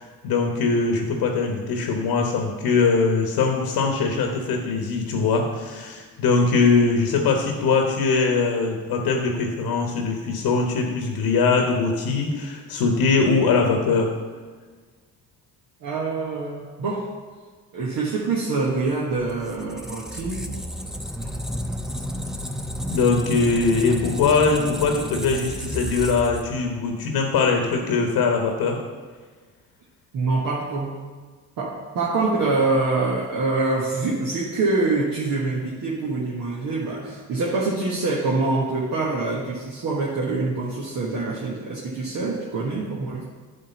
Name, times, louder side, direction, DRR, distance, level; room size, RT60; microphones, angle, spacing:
voice 1, 0.0-14.1 22.9-28.8, left 4 dB, 70° left, 2 dB, 1.3 m, -21 dB
voice 2, 15.8-17.1 17.7-20.5 21.2-21.3 30.1-31.0 31.6-43.2, right 3 dB, 55° right, -4 dB, 1.5 m, -25 dB
Squeak, 19.3-26.9, equal, ahead, 0.7 m, -32 dB
9.5 x 3.7 x 6.9 m, 1.5 s
supercardioid pair, 60°, 40 cm